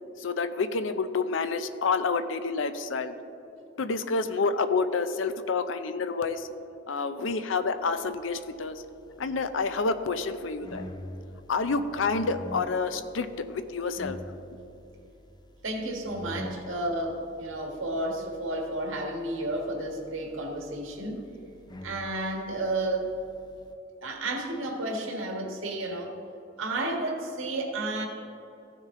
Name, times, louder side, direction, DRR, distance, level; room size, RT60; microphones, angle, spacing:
voice 1, 0.2-3.2 3.8-6.5 6.9-8.8 9.2-10.8 11.5-14.2, left 4 dB, 70° left, 10 dB, 0.6 m, -28 dB
sound 1, 8.3-23.7, left 1 dB, 20° left, 0.5 m, -46 dB
voice 2, 15.6-21.2 21.8-23.1 24.0-26.2 26.6-28.1, right 2 dB, 90° right, 2 dB, 1.5 m, -32 dB
15.0 x 6.4 x 3.7 m, 2.9 s
head